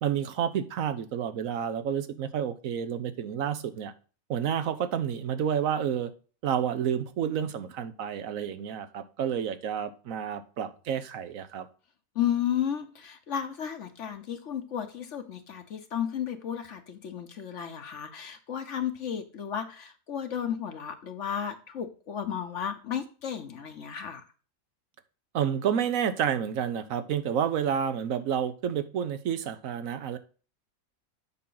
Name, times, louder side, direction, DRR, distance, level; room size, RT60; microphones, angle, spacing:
voice 1, 0.0-3.9 4.3-6.1 6.4-11.7 25.3-30.2, right 8 dB, 70° right, 12 dB, 1.2 m, -30 dB
voice 2, 12.1-24.2, left 9 dB, 60° left, 8 dB, 1.2 m, -33 dB
7.5 x 6.0 x 3.9 m, 0.36 s
omnidirectional pair, 1.5 m